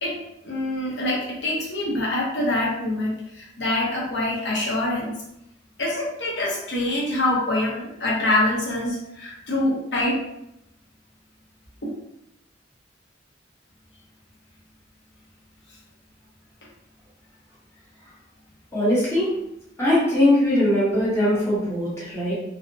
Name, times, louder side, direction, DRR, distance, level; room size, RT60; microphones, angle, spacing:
voice 1, 0.0-5.1 5.8-10.2 11.8-11.9, left 1 dB, 70° left, -4 dB, 0.7 m, -25 dB
voice 2, 18.7-19.3 19.8-22.3, left 1 dB, 15° left, -8 dB, 0.8 m, -20 dB
2.6 x 2.0 x 2.5 m, 0.82 s
head